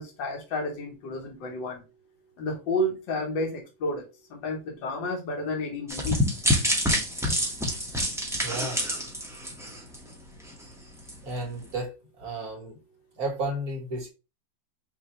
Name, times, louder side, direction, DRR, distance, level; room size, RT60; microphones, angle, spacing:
voice 1, 0.0-1.8 2.4-4.0 4.3-6.2 7.4-7.5, left 1 dB, 75° left, 1.8 m, -31 dB
sound 1, 5.9-10.1 10.5-10.6 11.1-11.2, left 1 dB, 5° right, 0.4 m, -27 dB
voice 2, 8.4-8.9 11.2-11.9 12.2-12.8 13.1-14.1, right 2 dB, 50° right, 1.9 m, -32 dB
5.5 x 2.8 x 3.0 m
omnidirectional pair, 2.0 m